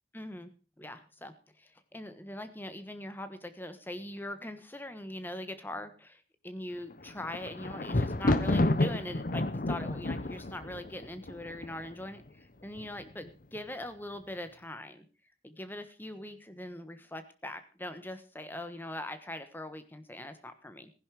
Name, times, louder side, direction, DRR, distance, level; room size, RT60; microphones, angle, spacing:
voice 1, 0.1-0.5 0.8-15.0 15.4-20.9, left 1 dB, 10° left, 10 dB, 1.3 m, -42 dB
Thunder, 6.9-12.0 12.8-13.3 13.5-13.6, left 2 dB, 50° left, 0.9 m, -30 dB
15.0 x 11.0 x 4.8 m, 0.35 s
head